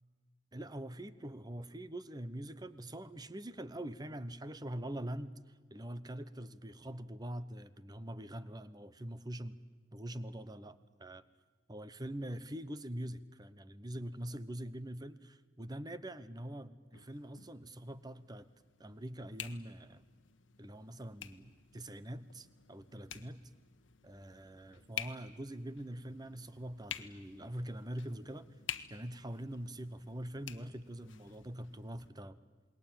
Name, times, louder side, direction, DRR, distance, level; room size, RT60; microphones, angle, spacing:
voice 1, 0.5-9.6 9.9-11.2 11.7-18.5 18.8-20.1 20.6-23.5 24.0-28.5 28.9-32.4, right 1 dB, 20° right, 14 dB, 0.9 m, -44 dB
sound 1, 16.9-32.1, left 9 dB, 85° left, 1.2 m, -50 dB
28.0 x 21.0 x 8.9 m, 1.4 s
head